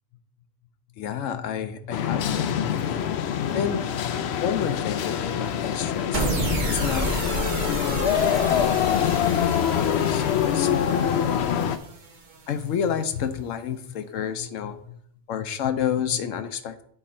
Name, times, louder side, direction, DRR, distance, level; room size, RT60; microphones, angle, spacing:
voice 1, 1.0-3.2 3.5-7.2 7.6-8.0 8.5-11.0 12.5-15.0 15.3-16.8, left 8 dB, 90° left, 10 dB, 1.0 m, -30 dB
sound 1, 1.9-11.8, left 9 dB, 65° left, 0.8 m, -25 dB
sound 2, 6.1-12.5, right 3 dB, 40° right, 0.9 m, -31 dB
7.8 x 4.2 x 5.0 m, 0.65 s
omnidirectional pair, 1.3 m